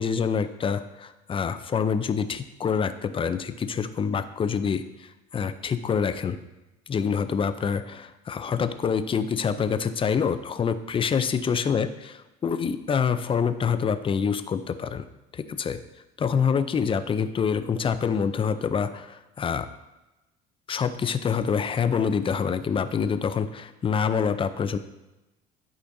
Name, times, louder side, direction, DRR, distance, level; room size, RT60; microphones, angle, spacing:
voice 1, 0.0-6.4 6.9-11.9 12.4-15.1 15.3-15.8 16.2-19.7 20.7-24.8, left 6 dB, 25° left, 11 dB, 0.5 m, -26 dB
11.5 x 5.0 x 2.7 m, 1.0 s
cardioid pair, 105°, 19 cm